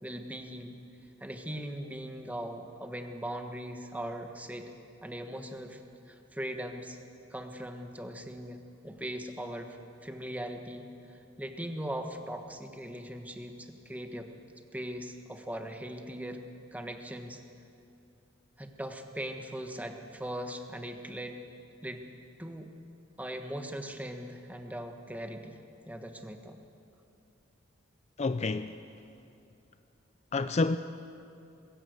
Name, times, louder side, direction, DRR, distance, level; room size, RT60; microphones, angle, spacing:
voice 1, 0.0-0.8 1.2-4.7 5.0-5.8 6.1-7.0 7.3-9.8 10.0-14.3 14.7-16.4 16.7-17.4 18.6-21.4 21.8-22.1 22.4-22.7 23.2-25.6 25.9-26.6, right 1 dB, 10° right, 1.3 m, -40 dB
voice 2, 28.2-28.7 30.3-30.8, left 3 dB, 35° left, 0.5 m, -28 dB
21.0 x 17.0 x 8.0 m
head